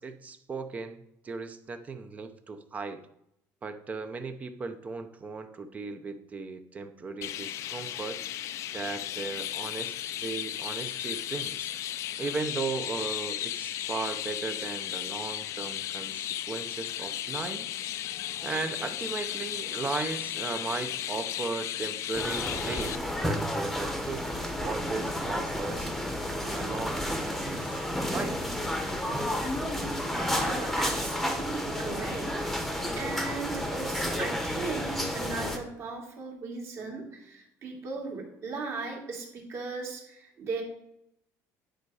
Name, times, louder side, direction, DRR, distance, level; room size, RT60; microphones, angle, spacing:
voice 1, 0.0-3.0 3.6-8.2 8.7-11.7 12.2-17.7 18.4-23.0 23.2-24.3 24.6-25.9 26.4-27.8 28.1-28.4, right 4 dB, 20° right, 9 dB, 0.7 m, -36 dB
Chirp tweet, 7.2-23.0, left 12 dB, 50° left, 0.4 m, -35 dB
sound 1, 22.1-35.6, left 1 dB, ahead, 1.0 m, -31 dB
voice 2, 30.4-32.6 33.0-40.6, right 4 dB, 45° right, 1 dB, 2.5 m, -37 dB
10.0 x 5.3 x 4.8 m, 0.78 s
cardioid pair, 160°, 6 cm